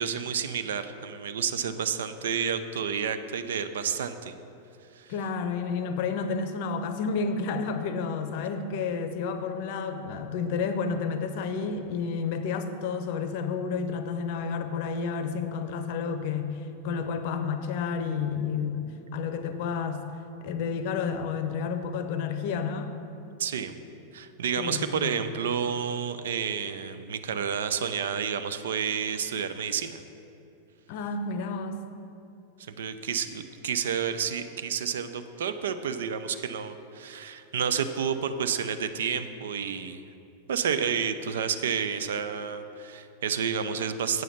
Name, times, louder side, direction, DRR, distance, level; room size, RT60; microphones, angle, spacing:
voice 1, 0.0-4.3 4.9-5.1 23.4-23.7 24.1-30.0 32.8-40.0 40.5-44.2, right 7 dB, 60° right, 10 dB, 0.4 m, -30 dB
voice 2, 5.1-20.0 20.4-22.9 24.6-25.1 30.9-31.8, left 5 dB, 50° left, 9 dB, 0.6 m, -30 dB
7.8 x 7.0 x 5.8 m, 2.8 s
figure-of-eight pair, 90°, 0 cm